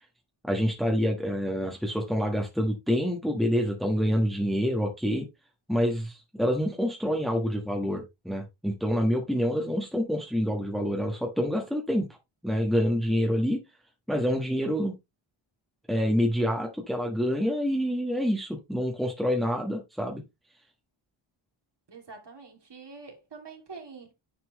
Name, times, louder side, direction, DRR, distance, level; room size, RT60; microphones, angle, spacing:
voice 1, 0.4-5.3 5.7-12.0 12.4-13.6 14.1-14.9 15.9-20.2, equal, ahead, 1.4 m, -27 dB
voice 2, 21.9-24.1, right 4 dB, 55° right, 2.7 m, -45 dB
9.8 x 4.4 x 3.1 m
wide cardioid pair, 105°, 50 cm